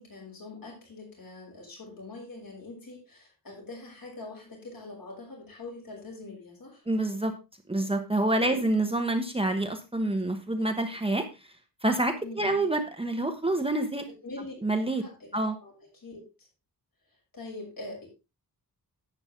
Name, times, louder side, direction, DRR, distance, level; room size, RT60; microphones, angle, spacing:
voice 1, 0.0-6.8 8.4-8.6 12.2-12.6 14.1-14.5 14.8-16.5 17.3-18.1, left 2 dB, 60° left, -1 dB, 6.4 m, -43 dB
voice 2, 6.9-7.3 7.7-11.2 11.8-14.0 14.6-15.0 15.3-15.5, right 2 dB, 15° right, 5 dB, 1.1 m, -27 dB
11.0 x 8.8 x 3.6 m, 0.27 s
wide cardioid pair, 155°, 39 cm